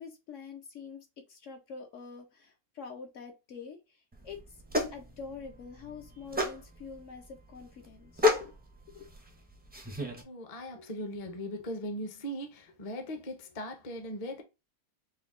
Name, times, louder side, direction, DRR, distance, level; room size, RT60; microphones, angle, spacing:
voice 1, 0.0-4.6 4.9-8.5 8.9-9.1, left 5 dB, 65° left, 0.9 m, -46 dB
sound 1, 4.1-10.2, left 2 dB, 15° right, 0.3 m, -33 dB
voice 2, 10.2-14.4, equal, 35° left, 0.6 m, -39 dB
4.4 x 2.3 x 3.5 m
omnidirectional pair, 1.6 m